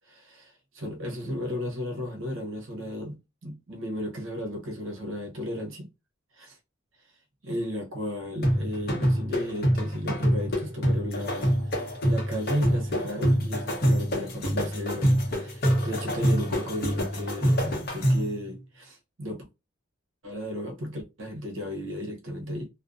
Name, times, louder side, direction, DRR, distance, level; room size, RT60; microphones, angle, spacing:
voice 1, 0.1-5.9 6.4-6.6 7.4-19.4 20.2-22.7, equal, 70° right, 0.8 m, -34 dB
sound 1, 8.4-18.4, equal, 45° left, 0.7 m, -26 dB
2.5 x 2.0 x 2.4 m
head